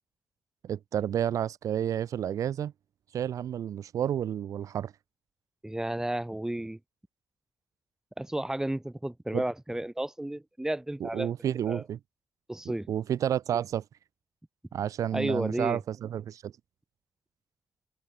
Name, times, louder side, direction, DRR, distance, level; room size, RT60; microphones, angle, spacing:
voice 1, 0.6-2.7 3.1-4.9 9.3-9.4 11.0-12.0 12.9-13.8 14.7-16.5, right 10 dB, 80° right, 1.4 m, -30 dB
voice 2, 5.6-6.8 8.2-11.3 11.7-11.8 12.5-12.9 15.1-15.8, right 1 dB, 10° right, 3.7 m, -32 dB
cardioid pair, 95°, 6 cm